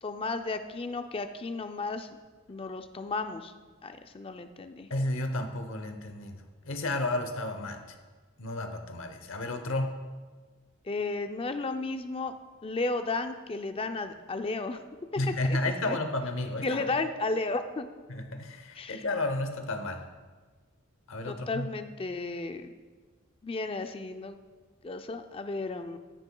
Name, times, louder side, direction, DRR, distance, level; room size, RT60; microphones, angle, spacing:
voice 1, 0.0-2.1 2.5-3.5 3.8-4.9 10.9-12.3 12.6-14.8 15.4-15.6 15.9-16.0 16.6-17.9 18.8-19.0 21.3-22.7 23.4-24.4 24.8-26.0, left 3 dB, 25° left, 8 dB, 0.4 m, -33 dB
voice 2, 4.9-8.0 8.4-10.0 15.2-16.9 18.1-20.1 21.1-21.7, left 2 dB, 70° left, 7 dB, 0.8 m, -32 dB
14.0 x 6.8 x 2.3 m, 1.4 s
head